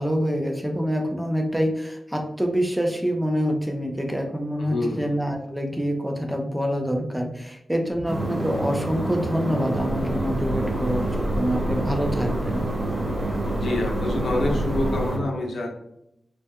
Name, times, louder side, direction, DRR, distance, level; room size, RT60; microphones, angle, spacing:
voice 1, 0.0-11.1 11.4-12.7, equal, 5° right, 2 dB, 0.4 m, -26 dB
voice 2, 4.6-5.1 13.5-15.7, left 2 dB, 85° left, -1 dB, 0.6 m, -27 dB
sound 1, 8.0-15.2, right 2 dB, 40° right, 1.1 m, -28 dB
sound 2, 8.0-14.7, equal, 55° right, 0.8 m, -42 dB
sound 3, 9.8-15.1, equal, 45° left, 0.9 m, -31 dB
2.2 x 2.1 x 2.7 m, 0.79 s
wide cardioid pair, 130°, 0 cm